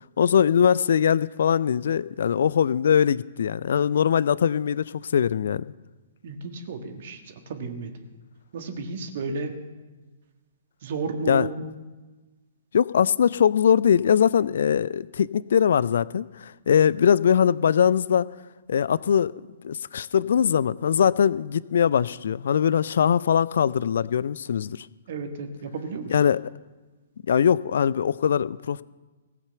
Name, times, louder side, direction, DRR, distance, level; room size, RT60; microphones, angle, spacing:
voice 1, 0.2-5.6 11.3-11.5 12.7-18.3 18.7-19.3 19.6-24.9 26.1-26.4 27.3-28.8, left 8 dB, 55° left, 20 dB, 0.3 m, -21 dB
voice 2, 6.2-8.0 8.5-9.6 10.8-11.6 25.1-26.1, right 4 dB, 50° right, 6 dB, 1.8 m, -33 dB
16.5 x 8.5 x 6.9 m, 1.2 s
figure-of-eight pair, 115°, 0 cm